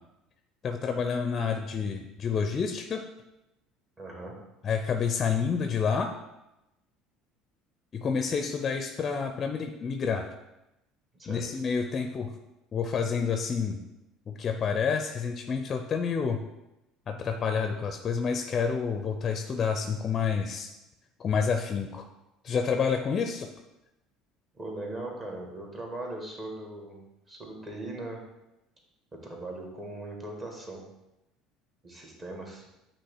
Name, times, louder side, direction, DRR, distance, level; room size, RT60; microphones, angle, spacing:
voice 1, 0.6-3.0 4.6-6.1 7.9-10.2 11.3-12.3 12.7-13.8 14.3-16.4 17.1-20.7 21.2-22.1 22.4-23.5, left 6 dB, 40° left, 5 dB, 0.5 m, -29 dB
voice 2, 4.0-4.4 11.2-11.5 24.5-27.0 27.3-28.2 29.2-30.8 31.8-32.6, right 2 dB, 30° right, 0 dB, 1.7 m, -39 dB
8.4 x 2.9 x 4.7 m, 0.92 s
figure-of-eight pair, 65°, 0 cm